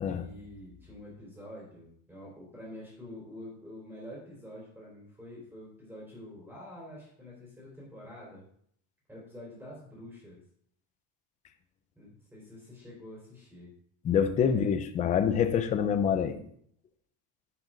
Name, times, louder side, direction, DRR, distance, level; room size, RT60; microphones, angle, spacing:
voice 1, 0.1-8.4 9.1-10.4 12.0-13.7 14.4-14.7, left 1 dB, 5° right, -5 dB, 3.9 m, -47 dB
voice 2, 14.0-16.4, left 7 dB, 20° left, 9 dB, 0.3 m, -26 dB
11.0 x 8.4 x 3.8 m, 0.65 s
cardioid pair, 170°, 48 cm